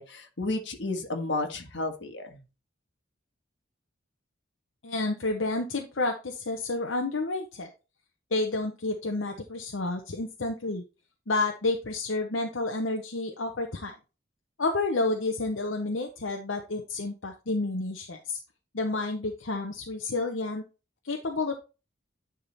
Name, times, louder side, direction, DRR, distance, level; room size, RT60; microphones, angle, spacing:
voice 1, 0.0-2.4, left 2 dB, 65° left, 4 dB, 1.7 m, -32 dB
voice 2, 4.8-7.7 8.3-10.8 11.3-13.9 14.6-18.4 18.7-20.6 21.0-21.6, left 2 dB, 80° left, 2 dB, 1.0 m, -30 dB
10.0 x 3.8 x 4.2 m, 0.30 s
head